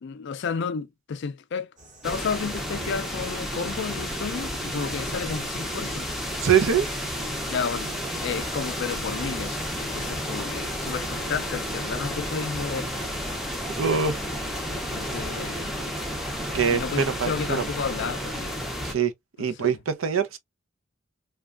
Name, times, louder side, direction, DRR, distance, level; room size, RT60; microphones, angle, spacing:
voice 1, 0.0-1.7 2.0-6.1 7.5-7.9 8.2-12.9 13.9-14.1 14.9-15.7 16.7-18.6 19.4-19.8, left 6 dB, 60° left, 0.4 m, -32 dB
sound 1, 1.8-9.8, right 1 dB, 40° right, 1.1 m, -50 dB
sound 2, 2.0-18.9, equal, ahead, 0.6 m, -31 dB
voice 2, 6.4-6.9 13.8-14.2 16.5-17.7 18.8-19.1 19.4-20.4, right 7 dB, 80° right, 0.6 m, -23 dB
3.1 x 2.2 x 2.3 m
head